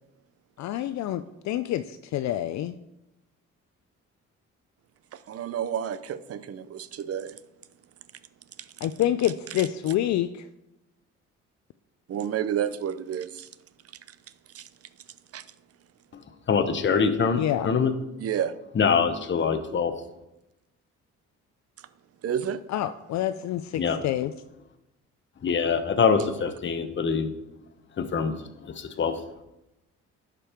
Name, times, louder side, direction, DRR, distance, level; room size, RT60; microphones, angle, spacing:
voice 1, 0.6-2.8 8.8-10.5 17.4-17.7 22.7-24.3, left 12 dB, 65° left, 11 dB, 0.5 m, -27 dB
voice 2, 5.1-7.4 8.6-8.7 12.1-13.5 14.1-14.2 14.5-14.7 15.3-15.4 18.2-18.5 21.8-21.9 22.2-22.6, right 9 dB, 50° right, 15 dB, 0.6 m, -30 dB
voice 3, 16.5-17.9 18.8-19.9 23.8-24.0 25.4-27.3 28.0-29.2, left 6 dB, 40° left, 8 dB, 0.9 m, -24 dB
11.0 x 5.3 x 4.5 m, 0.92 s
cardioid pair, 90°, 30 cm